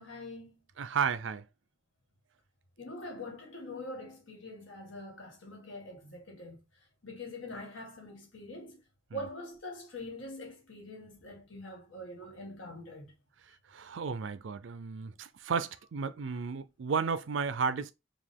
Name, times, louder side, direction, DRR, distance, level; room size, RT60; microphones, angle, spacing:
voice 1, 0.0-0.6 2.8-6.6 7.0-8.8 9.1-13.1, left 1 dB, 80° left, 1.8 m, -44 dB
voice 2, 0.8-1.4 9.1-9.2 13.7-17.9, right 5 dB, 75° right, 0.4 m, -33 dB
5.0 x 2.4 x 3.6 m
head